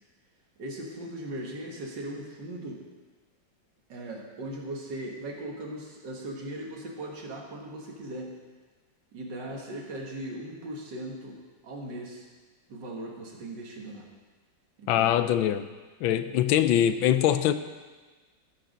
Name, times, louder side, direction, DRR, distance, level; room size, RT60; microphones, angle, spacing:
voice 1, 0.6-2.8 3.9-8.4 9.1-12.3 12.7-14.1 14.8-15.3, right 1 dB, 65° right, 0 dB, 2.2 m, -38 dB
voice 2, 14.9-15.7 16.0-17.5, left 11 dB, 85° left, 11 dB, 1.4 m, -23 dB
15.5 x 6.4 x 5.1 m, 1.3 s
omnidirectional pair, 2.1 m